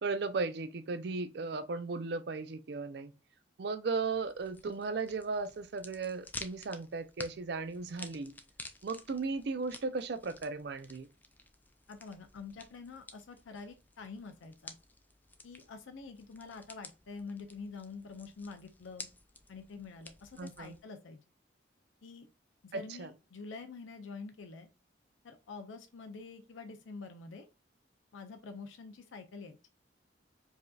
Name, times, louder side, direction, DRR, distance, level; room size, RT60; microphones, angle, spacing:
voice 1, 0.0-3.1 3.6-8.3 8.8-11.1 20.4-20.7 22.7-23.1, right 4 dB, 60° right, 0.4 m, -36 dB
sound 1, 4.1-20.8, left 2 dB, 10° left, 0.3 m, -52 dB
voice 2, 11.9-14.7 15.4-19.1 19.5-21.2 22.0-22.3 22.6-24.7 25.2-27.5 28.1-29.6, left 4 dB, 90° left, 0.5 m, -47 dB
4.7 x 2.7 x 2.3 m
head